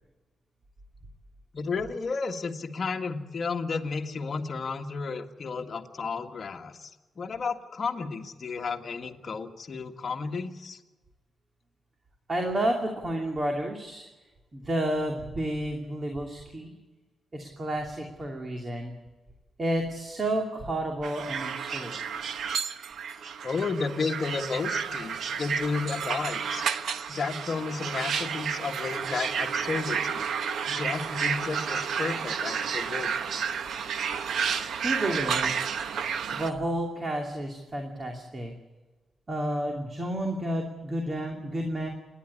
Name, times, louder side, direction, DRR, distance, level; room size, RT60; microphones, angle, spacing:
voice 1, 1.5-6.9 7.2-10.8 23.4-26.7 27.1-30.2 30.7-33.1, left 4 dB, 45° left, 3 dB, 1.8 m, -32 dB
voice 2, 12.3-14.1 14.5-16.7 17.3-18.9 19.6-21.9 34.8-35.7 36.3-38.5 39.3-41.9, right 1 dB, 30° right, 2 dB, 2.8 m, -31 dB
sound 1, 21.0-36.5, right 6 dB, 85° right, 1.2 m, -31 dB
28.0 x 11.0 x 9.9 m, 1.2 s
cardioid pair, 110°, 0 cm